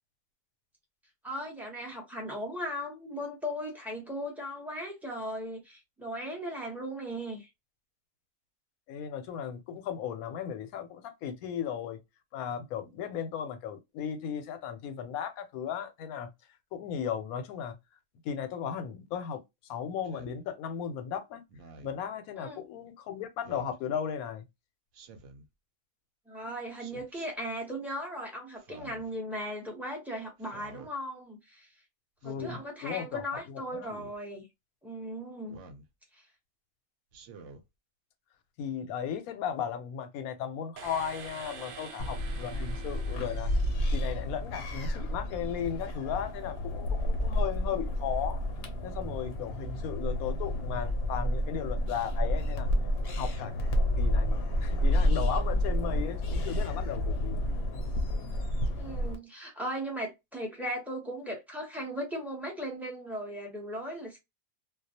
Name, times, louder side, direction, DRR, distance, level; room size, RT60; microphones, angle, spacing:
voice 1, 1.2-7.5 22.4-22.6 26.3-31.7 32.2-34.4 34.8-35.6 36.1-36.2 58.7-64.2, equal, ahead, 0.5 m, -37 dB
voice 2, 8.9-12.0 12.3-16.3 16.7-17.8 18.2-19.4 19.7-21.4 21.8-24.5 32.2-34.0 38.6-43.5 43.9-48.4 48.8-52.7 53.1-53.5 54.0-57.5, left 8 dB, 90° left, 1.0 m, -36 dB
Speech synthesizer, 20.0-20.4 21.5-22.0 23.4-23.8 24.9-25.5 26.8-27.3 28.6-29.1 30.4-30.9 32.2-32.6 33.8-34.2 35.5-35.9 37.1-37.6, right 3 dB, 65° right, 0.8 m, -49 dB
sound 1, 40.8-44.6, right 6 dB, 85° right, 0.4 m, -47 dB
sound 2, 42.0-59.2, equal, 60° left, 0.7 m, -30 dB
2.3 x 2.1 x 2.6 m
omnidirectional pair, 1.5 m